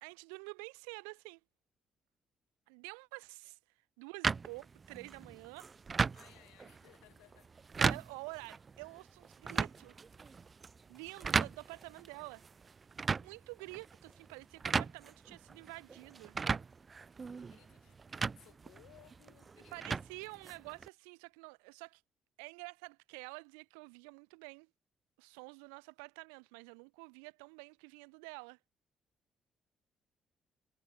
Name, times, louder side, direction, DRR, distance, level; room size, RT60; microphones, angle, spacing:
voice 1, 0.0-1.4 2.7-3.6 4.0-5.7 7.8-10.0 10.9-12.4 13.2-16.4 19.7-22.0 22.4-24.7 25.2-28.6, right 40 dB or more, 75° right, 1.5 m, -49 dB
sound 1, 4.2-20.9, right 5 dB, 35° right, 0.5 m, -38 dB
voice 2, 6.1-7.5 17.3-20.1, left 22 dB, 70° left, 5.0 m, -63 dB
figure-of-eight pair, 45°, 0 cm